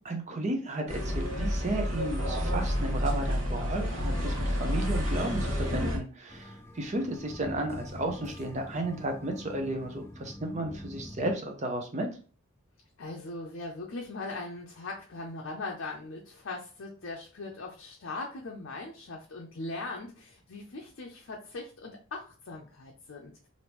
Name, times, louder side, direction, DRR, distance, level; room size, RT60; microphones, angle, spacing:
voice 1, 0.0-12.1, right 1 dB, 35° right, 4 dB, 0.6 m, -33 dB
sound 1, 0.9-6.0, equal, 65° right, 1.2 m, -29 dB
sound 2, 6.3-11.4, left 1 dB, 10° left, 0.3 m, -45 dB
voice 2, 13.0-23.5, left 3 dB, 65° left, 0 dB, 0.5 m, -40 dB
3.4 x 2.6 x 2.9 m, 0.38 s
head